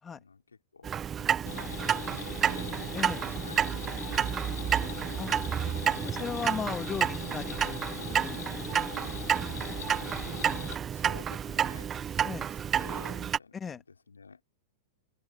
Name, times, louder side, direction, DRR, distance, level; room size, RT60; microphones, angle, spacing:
voice 1, 0.1-2.9 3.4-5.1 10.9-14.4, left 5 dB, 80° left, 4.5 m, -51 dB
Clock, 0.8-13.4, right 8 dB, 25° right, 1.3 m, -30 dB
sound 1, 1.5-10.7, left 14 dB, 60° left, 4.0 m, -42 dB
voice 2, 2.9-3.2 5.2-5.4 6.0-8.8 9.2-9.7 12.2-12.5 13.5-13.8, left 6 dB, 20° left, 2.3 m, -38 dB
figure-of-eight pair, 95°, 0 cm